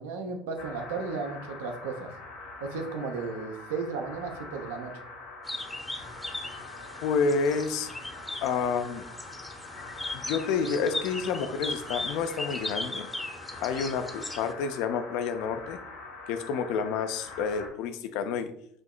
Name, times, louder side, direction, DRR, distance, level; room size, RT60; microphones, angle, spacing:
voice 1, 0.0-2.1 2.6-4.9, right 4 dB, 70° right, 4 dB, 0.6 m, -34 dB
sound 1, 0.6-17.7, left 3 dB, 80° left, 1.2 m, -44 dB
sound 2, 5.4-14.5, left 2 dB, 10° left, 0.7 m, -38 dB
voice 2, 7.0-7.9 8.4-9.1 10.1-13.1 13.6-15.8 16.3-18.5, left 5 dB, 60° left, 9 dB, 0.4 m, -29 dB
7.5 x 2.8 x 2.3 m, 0.69 s
figure-of-eight pair, 60°, 0 cm